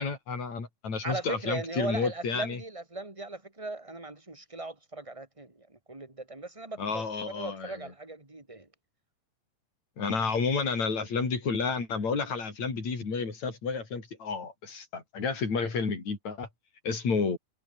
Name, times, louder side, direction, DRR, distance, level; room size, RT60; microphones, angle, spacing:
voice 1, 0.0-2.6 6.8-7.9 10.0-16.5 16.8-17.4, left 4 dB, 50° left, 6.9 m, -31 dB
voice 2, 1.0-8.7, right 2 dB, 10° right, 3.2 m, -38 dB
omnidirectional pair, 4.2 m